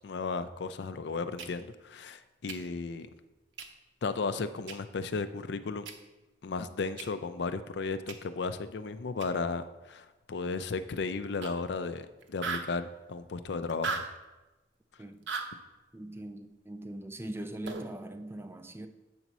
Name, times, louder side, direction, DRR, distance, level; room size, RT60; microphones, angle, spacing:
voice 1, 0.0-3.1 4.0-5.9 6.4-14.0, left 4 dB, 65° left, 0.4 m, -35 dB
sound 1, 1.4-1.5 2.5-2.6 3.6-3.7 4.7-4.8 5.9-6.0 7.0-7.1 8.1-8.2 9.2-9.3 11.4-11.5 11.8-11.9 12.2-12.7 13.7-14.1 15.3-15.5 17.7-18.0, right 4 dB, 75° right, 0.8 m, -35 dB
voice 2, 15.9-18.9, right 1 dB, 15° right, 0.3 m, -41 dB
7.8 x 4.1 x 6.0 m
head